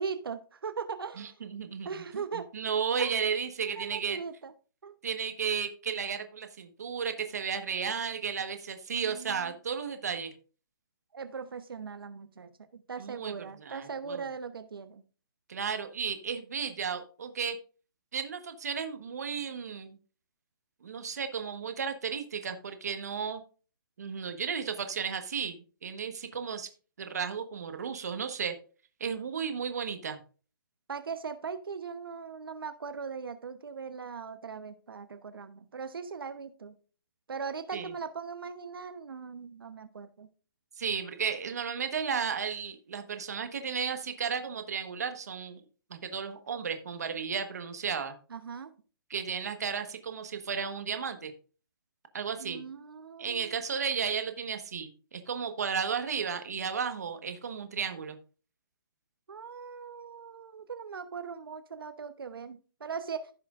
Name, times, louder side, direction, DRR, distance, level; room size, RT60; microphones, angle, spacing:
voice 1, 0.0-1.3 1.8-2.5 3.0-3.2 3.7-4.5 4.8-5.0 8.9-9.5 11.1-15.0 30.9-36.7 37.3-40.3 48.3-48.7 52.4-53.6 59.3-63.3, right 5 dB, 85° right, 9 dB, 0.9 m, -39 dB
voice 2, 1.2-2.2 2.5-4.2 5.0-10.3 13.0-14.2 15.5-17.6 18.1-20.0 20.8-23.4 24.0-26.7 27.0-28.5 29.0-30.2 37.7-37.9 40.8-45.6 45.9-48.2 49.1-51.3 52.1-52.6 53.2-58.2, right 6 dB, 45° right, 7 dB, 1.3 m, -34 dB
15.5 x 6.0 x 2.5 m, 0.37 s
hypercardioid pair, 180°, 12 cm